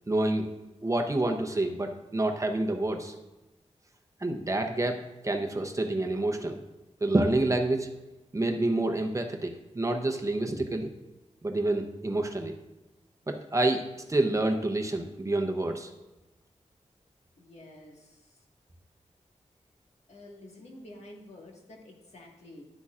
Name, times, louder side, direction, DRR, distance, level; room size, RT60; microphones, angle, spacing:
voice 1, 0.1-0.5 0.8-3.1 4.2-6.6 7.0-7.9 8.3-10.9 11.4-12.5 13.3-15.9, right 2 dB, 25° right, 3 dB, 0.8 m, -28 dB
voice 2, 17.4-18.4 20.1-22.7, left 1 dB, 65° left, -1 dB, 1.7 m, -49 dB
11.0 x 8.3 x 2.5 m, 1.0 s
wide cardioid pair, 100°, 12 cm